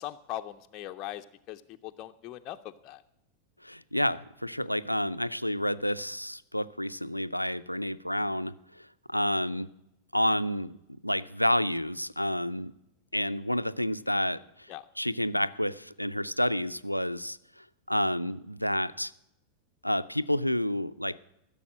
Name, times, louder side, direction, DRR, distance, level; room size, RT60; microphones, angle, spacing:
voice 1, 0.0-3.0 14.7-14.9, left 13 dB, 35° left, 5 dB, 0.5 m, -40 dB
voice 2, 3.6-9.7 10.1-10.8 11.0-12.7 13.1-14.4 15.0-17.4 17.9-19.1 19.8-21.2, equal, 90° left, 13 dB, 0.4 m, -29 dB
15.0 x 7.0 x 7.4 m, 0.83 s
figure-of-eight pair, 90°, 0 cm